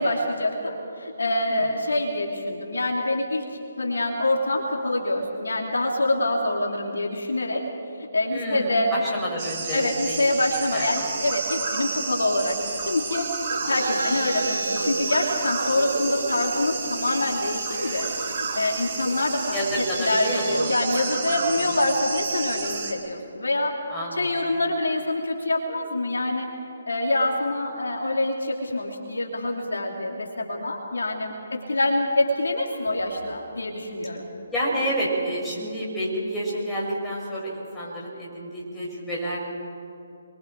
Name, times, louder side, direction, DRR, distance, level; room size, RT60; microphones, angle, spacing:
voice 1, 0.0-3.4 3.8-7.6 8.1-8.9 9.7-12.6 12.9-18.1 18.4-19.6 20.0-23.8 24.1-26.5 26.9-31.3 31.7-34.3, left 1 dB, 75° left, 1 dB, 3.0 m, -25 dB
voice 2, 8.3-10.2 10.5-10.9 19.5-20.7 21.3-21.6 23.9-24.6 34.5-39.5, equal, 10° left, -7 dB, 6.8 m, -29 dB
sound 1, 9.4-22.9, right 4 dB, 35° right, 3.6 m, -31 dB
Laughter, 13.4-20.9, right 2 dB, 90° right, 3.0 m, -33 dB
28.0 x 23.0 x 4.7 m, 2.7 s
figure-of-eight pair, 145°, 0 cm